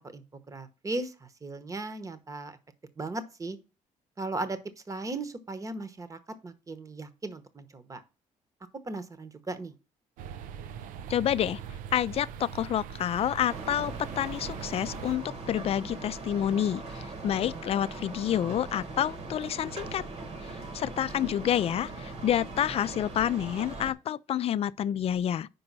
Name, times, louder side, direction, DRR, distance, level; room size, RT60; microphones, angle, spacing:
voice 1, 0.0-2.6 3.0-3.6 4.2-4.6 4.9-8.0 8.8-9.7 21.2-21.3, right 2 dB, 25° right, 1.0 m, -37 dB
sound 1, 10.2-15.2, right 8 dB, 85° right, 0.5 m, -41 dB
voice 2, 11.1-11.6 11.9-20.0 20.4-25.5, left 10 dB, 50° left, 0.4 m, -29 dB
sound 2, 13.5-23.9, right 3 dB, 50° right, 1.5 m, -40 dB
5.3 x 4.9 x 6.0 m
cardioid pair, 85°, 13 cm